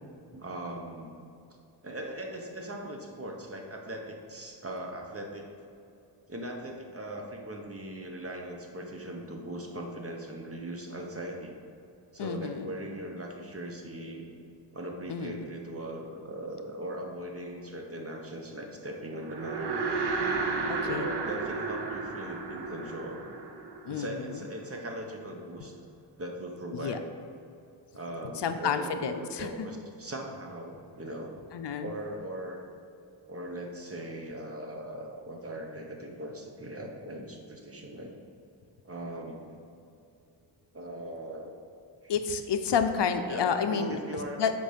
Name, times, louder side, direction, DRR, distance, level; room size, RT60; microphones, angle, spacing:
voice 1, 0.3-1.1 1.8-5.5 6.3-11.5 12.1-14.3 14.7-19.9 20.8-23.3 23.9-25.8 26.2-27.0 27.9-31.4 31.8-32.6 33.3-38.1 38.8-39.6 40.7-41.5 42.0-42.1 43.3-44.4, right 1 dB, 30° right, 1 dB, 1.1 m, -39 dB
voice 2, 12.2-12.7 15.1-15.4 20.7-21.1 23.8-24.4 26.7-27.0 28.2-29.7 31.5-31.9 42.1-44.0 44.4-44.5, left 6 dB, 65° left, 8 dB, 0.6 m, -30 dB
sound 1, 19.2-24.6, right 4 dB, 60° right, 0.9 m, -33 dB
7.9 x 5.3 x 5.1 m, 2.6 s
wide cardioid pair, 100°, 46 cm